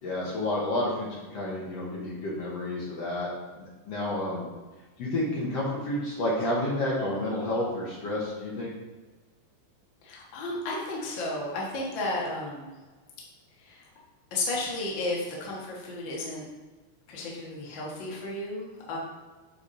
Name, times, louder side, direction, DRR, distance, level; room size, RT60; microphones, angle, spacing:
voice 1, 0.0-3.3 3.5-4.5 5.0-8.7, left 1 dB, 70° left, -5 dB, 1.4 m, -30 dB
voice 2, 10.0-12.7 13.6-13.8 14.3-16.5 17.1-19.0, left 2 dB, 90° left, -4 dB, 1.0 m, -33 dB
8.6 x 5.0 x 4.2 m, 1.3 s
omnidirectional pair, 4.9 m